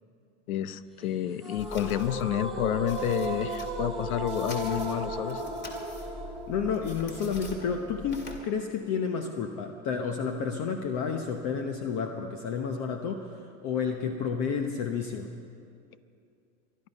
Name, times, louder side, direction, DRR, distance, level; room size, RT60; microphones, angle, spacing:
voice 1, 0.5-5.4, left 12 dB, 85° left, 15 dB, 0.8 m, -30 dB
sound 1, 1.4-8.5, right 2 dB, ahead, 2.3 m, -36 dB
sound 2, 1.6-8.4, left 1 dB, 25° left, 2.4 m, -43 dB
voice 2, 6.5-15.3, left 6 dB, 45° left, 5 dB, 1.1 m, -31 dB
23.5 x 11.0 x 5.4 m, 2.5 s
supercardioid pair, 120°, 42 cm